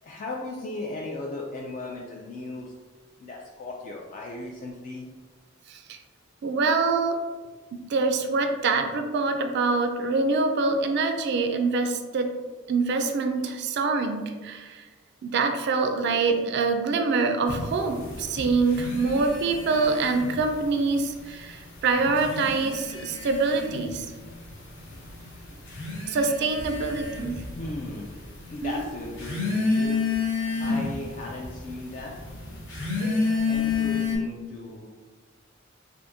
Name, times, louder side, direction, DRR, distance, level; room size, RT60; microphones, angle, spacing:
voice 1, 0.0-2.7 3.2-5.1 27.6-28.2 28.5-30.0 30.6-32.2 33.0-34.9, left 2 dB, 40° left, -2 dB, 0.3 m, -36 dB
voice 2, 6.4-7.2 7.7-12.3 12.7-14.8 15.2-24.1 26.1-27.4 28.6-28.9, right 4 dB, 55° right, 6 dB, 0.3 m, -25 dB
sound 1, 17.5-20.6 20.8-21.6 22.1-34.2, left 4 dB, 60° left, 0.9 m, -30 dB
3.5 x 2.5 x 2.6 m, 1.4 s
head